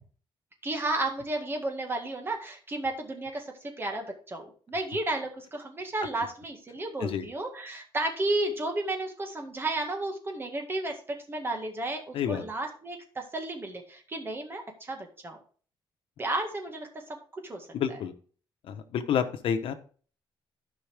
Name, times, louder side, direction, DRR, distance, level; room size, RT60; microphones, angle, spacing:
voice 1, 0.6-15.4 16.2-16.9 17.3-17.7, right 2 dB, 25° right, 3 dB, 1.9 m, -33 dB
voice 2, 17.7-18.1 18.6-19.7, left 8 dB, 80° left, 8 dB, 1.1 m, -29 dB
14.0 x 5.5 x 3.5 m, 0.42 s
cardioid pair, 150°, 9 cm